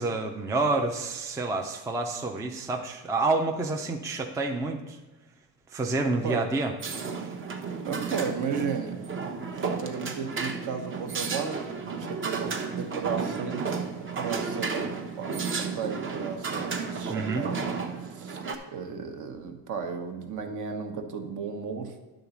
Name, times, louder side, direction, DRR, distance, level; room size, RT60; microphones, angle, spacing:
voice 1, 0.0-5.0 5.7-6.7 7.1-7.3 17.1-17.5, right 3 dB, 10° right, 3 dB, 0.4 m, -28 dB
sound 1, 6.8-18.6, right 5 dB, 35° right, 0.8 m, -33 dB
voice 2, 7.8-9.0 9.5-11.7 12.0-12.5 12.8-17.7 18.0-21.9, right 6 dB, 55° right, 5 dB, 1.1 m, -34 dB
10.5 x 3.9 x 7.1 m, 1.2 s
cardioid pair, 175°, 37 cm